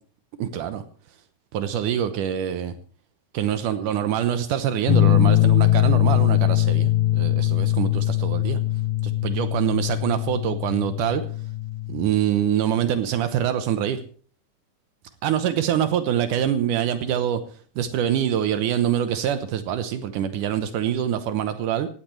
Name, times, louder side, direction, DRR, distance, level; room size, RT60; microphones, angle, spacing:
voice 1, 0.4-0.8 1.5-2.7 3.3-8.6 9.0-11.2 11.9-14.0 15.2-17.4 17.8-21.9, right 10 dB, 75° right, 10 dB, 2.3 m, -25 dB
sound 1, 4.9-12.1, left 15 dB, 85° left, 1.3 m, -21 dB
18.0 x 15.5 x 3.2 m, 0.42 s
omnidirectional pair, 3.9 m